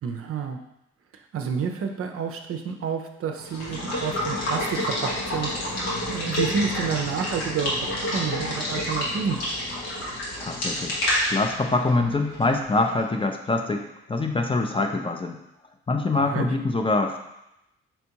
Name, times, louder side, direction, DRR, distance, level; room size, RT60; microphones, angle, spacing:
voice 1, 0.0-0.6 1.3-7.7 8.1-9.4 16.1-16.5, right 6 dB, 45° right, 4 dB, 0.6 m, -29 dB
Water / Water tap faucet / Liquid, 3.4-13.0, left 1 dB, 85° left, 1.0 m, -29 dB
voice 2, 10.4-11.0 11.3-15.4 15.9-17.2, left 2 dB, 15° left, 3 dB, 0.5 m, -24 dB
4.4 x 3.3 x 2.8 m, 0.85 s
hypercardioid pair, 45°, 31 cm